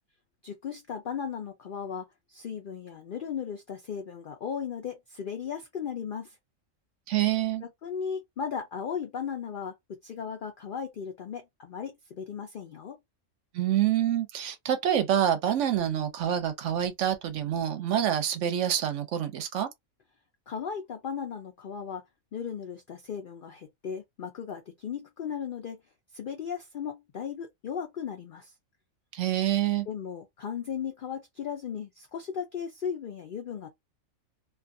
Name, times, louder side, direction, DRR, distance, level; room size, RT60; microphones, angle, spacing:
voice 1, 0.4-6.4 7.6-13.0 20.5-22.0 22.3-25.8 26.1-28.5 29.9-33.7, left 7 dB, 70° left, 0.5 m, -36 dB
voice 2, 7.1-7.6 13.5-19.7 29.1-29.9, right 10 dB, 70° right, 0.8 m, -27 dB
2.4 x 2.3 x 2.5 m
omnidirectional pair, 1.4 m